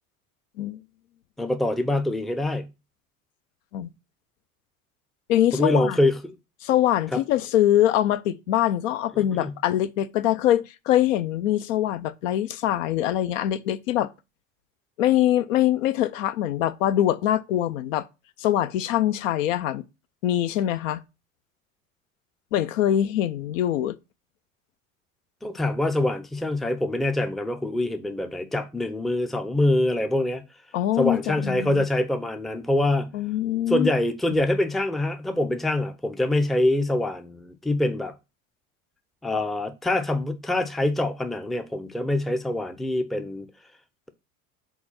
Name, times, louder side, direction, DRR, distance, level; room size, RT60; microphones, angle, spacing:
voice 1, 1.4-2.7 5.5-6.4 7.1-7.2 9.3-9.5 25.4-30.4 31.0-33.1 33.7-38.1 39.2-43.5, left 1 dB, ahead, 0.5 m, -25 dB
voice 2, 5.3-6.0 6.6-14.1 15.0-18.1 18.4-19.8 20.2-21.0 22.5-24.0 30.7-31.8 33.1-33.9, left 12 dB, 65° left, 0.6 m, -23 dB
4.7 x 3.9 x 5.7 m
hypercardioid pair, 75°, 42 cm